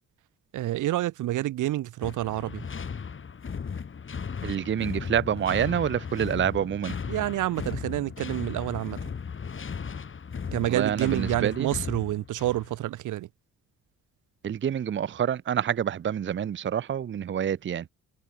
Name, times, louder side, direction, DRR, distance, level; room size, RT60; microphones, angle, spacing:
voice 1, 0.5-2.6 7.1-9.0 10.5-13.3, right 15 dB, 80° right, 1.6 m, -28 dB
sound 1, 2.0-12.8, left 6 dB, 40° left, 6.3 m, -36 dB
voice 2, 4.4-7.0 10.7-11.7 14.4-17.8, right 9 dB, 40° right, 0.7 m, -27 dB
cardioid pair, 90°, 30 cm